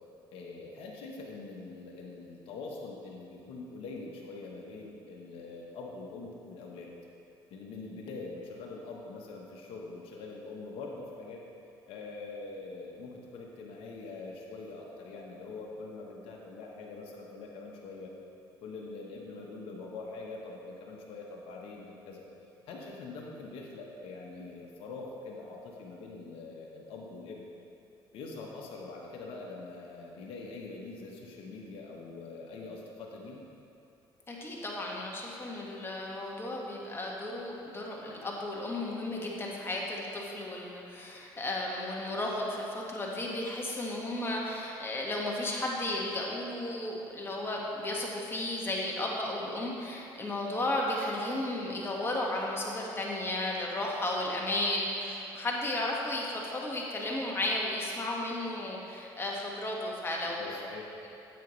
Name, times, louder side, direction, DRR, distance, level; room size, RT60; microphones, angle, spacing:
voice 1, 0.3-6.9 7.5-11.4 11.9-18.1 18.6-22.2 22.7-27.5 28.1-33.4 60.2-60.9, left 3 dB, 65° left, -2 dB, 1.1 m, -44 dB
voice 2, 34.3-60.5, left 1 dB, 25° left, -2 dB, 1.7 m, -34 dB
9.2 x 8.0 x 3.2 m, 2.7 s
supercardioid pair, 80°, 10 cm